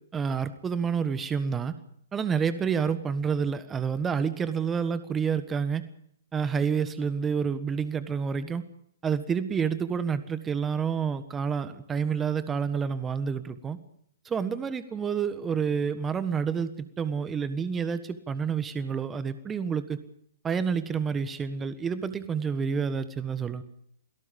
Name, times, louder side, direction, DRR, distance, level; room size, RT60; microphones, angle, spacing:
voice 1, 0.1-1.8 2.1-5.8 6.3-8.6 9.0-13.8 14.2-20.0 20.4-23.6, right 6 dB, 15° right, 12 dB, 1.4 m, -29 dB
28.5 x 17.5 x 5.4 m, 0.68 s
hypercardioid pair, 125°, 0 cm